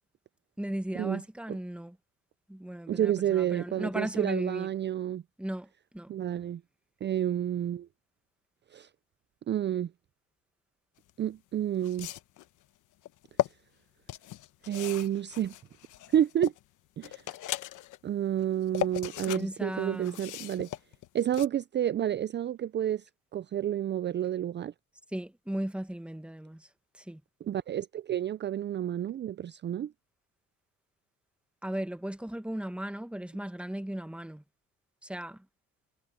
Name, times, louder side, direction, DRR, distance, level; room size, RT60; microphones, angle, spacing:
voice 1, 0.6-2.0 2.5-4.7 5.4-5.7 5.9-6.1 19.3-20.2 25.1-26.7 27.0-27.2 31.6-34.4 35.0-35.4, right 1 dB, 5° right, 1.4 m, -36 dB
voice 2, 2.9-5.2 6.1-6.6 7.0-7.9 8.7-8.9 9.5-9.9 11.2-12.1 14.6-15.5 16.1-16.5 17.0-17.2 18.0-20.7 21.1-24.7 27.4-29.9, right 11 dB, 35° right, 0.4 m, -30 dB
sound 1, 11.1-11.2 11.8-12.4 13.1-13.5 14.1-16.6 17.0-18.0 18.4-19.4 19.7-21.5, left 14 dB, 85° left, 1.1 m, -36 dB
cardioid pair, 90°, 30 cm